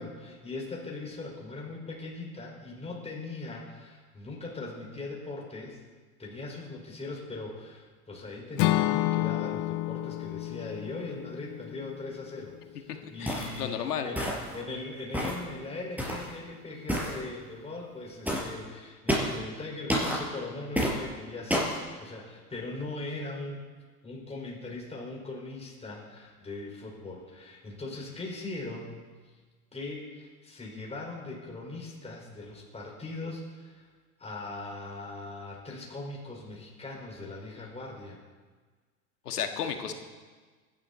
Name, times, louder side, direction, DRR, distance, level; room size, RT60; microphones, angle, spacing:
voice 1, 0.0-5.8 6.2-23.6 24.0-29.0 29.7-33.9 34.2-38.2, left 2 dB, 15° left, -2 dB, 4.6 m, -40 dB
Acoustic guitar / Strum, 8.6-12.7, left 16 dB, 40° left, 0.6 m, -30 dB
voice 2, 12.9-14.1 39.3-39.9, left 8 dB, 80° left, 6 dB, 1.7 m, -33 dB
sound 1, 13.3-13.6 14.2-14.6 15.1-15.4 16.0-16.3 16.9-17.2 18.3-18.5 19.1-19.4 19.9-20.2 20.8-21.0 21.5-21.8, equal, 5° right, 4.7 m, -29 dB
25.0 x 11.0 x 4.1 m, 1.4 s
hypercardioid pair, 85°, 46 cm